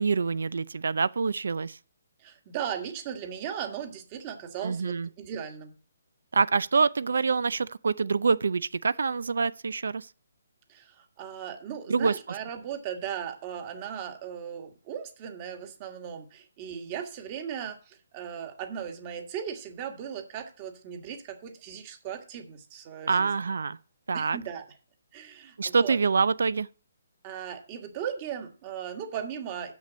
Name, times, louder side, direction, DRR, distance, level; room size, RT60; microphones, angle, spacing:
voice 1, 0.0-1.8 4.6-5.1 6.3-10.1 11.9-12.1 23.1-23.8 24.1-24.4 25.6-26.7, right 5 dB, 75° right, 0.5 m, -26 dB
voice 2, 2.2-5.8 10.7-23.3 24.1-24.6 25.1-26.0 27.2-29.7, right 8 dB, 25° right, 1.5 m, -37 dB
6.9 x 6.3 x 7.5 m
hypercardioid pair, 165°, 0 cm